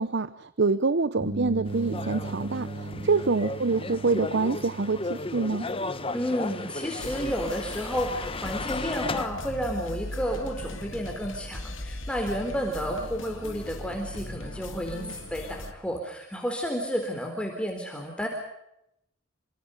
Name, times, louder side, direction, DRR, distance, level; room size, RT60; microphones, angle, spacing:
voice 1, 0.0-5.7, right 3 dB, 60° right, 16 dB, 0.8 m, -26 dB
sound 1, 1.2-8.9, right 2 dB, 40° right, 2.0 m, -39 dB
sound 2, 1.7-9.3, left 3 dB, 30° left, 1.3 m, -35 dB
voice 2, 6.1-18.3, equal, 5° left, 2 dB, 4.0 m, -31 dB
sound 3, 7.0-15.7, left 1 dB, 70° left, 2.4 m, -38 dB
29.0 x 25.5 x 5.3 m, 0.80 s
head